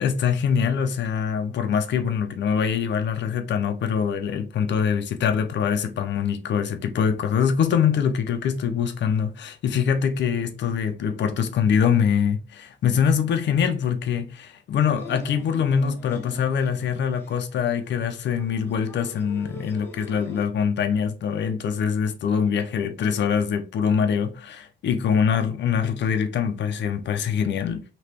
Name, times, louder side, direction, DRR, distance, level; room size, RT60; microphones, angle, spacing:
voice 1, 0.0-27.8, left 7 dB, 65° left, 0.7 m, -24 dB
sound 1, 15.0-20.5, left 1 dB, 10° left, 1.0 m, -43 dB
3.3 x 3.0 x 2.9 m
cardioid pair, 90°, 20 cm